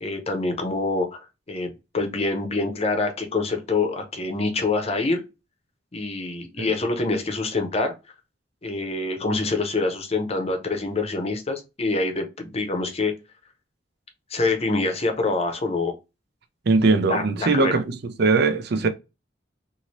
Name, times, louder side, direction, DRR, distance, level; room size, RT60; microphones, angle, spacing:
voice 1, 0.0-5.2 5.9-7.9 8.6-13.1 14.3-15.9 17.1-17.7, left 3 dB, 35° left, 0.7 m, -26 dB
voice 2, 16.7-18.9, right 3 dB, 60° right, 0.5 m, -20 dB
2.8 x 2.5 x 3.0 m
head